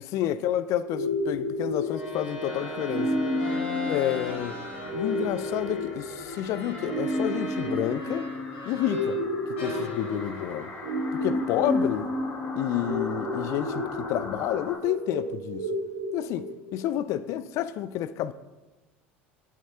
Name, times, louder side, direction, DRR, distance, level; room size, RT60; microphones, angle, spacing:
voice 1, 0.1-3.1 3.9-4.6 4.9-8.3 8.7-9.2 9.5-10.7 11.1-12.1 12.6-15.7 16.1-18.3, left 11 dB, 50° left, 0.4 m, -29 dB
sound 1, 0.8-16.8, left 1 dB, 70° right, 3.0 m, -31 dB
sound 2, 1.8-9.2 9.6-11.9, left 1 dB, 75° left, 2.6 m, -40 dB
sound 3, 2.5-14.8, left 2 dB, 30° left, 1.6 m, -42 dB
11.0 x 8.4 x 2.8 m
figure-of-eight pair, 70°, 6 cm